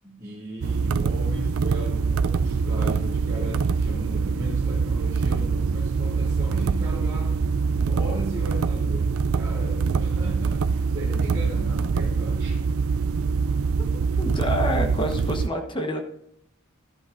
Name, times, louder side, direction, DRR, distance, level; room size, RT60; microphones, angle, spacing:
voice 1, 0.0-7.3 7.7-12.6, equal, 15° right, -9 dB, 2.3 m, -36 dB
sound 1, 0.6-15.5, right 5 dB, 75° right, 0.4 m, -24 dB
voice 2, 14.2-16.0, equal, 20° left, 4 dB, 1.1 m, -27 dB
12.5 x 11.0 x 2.6 m, 0.74 s
head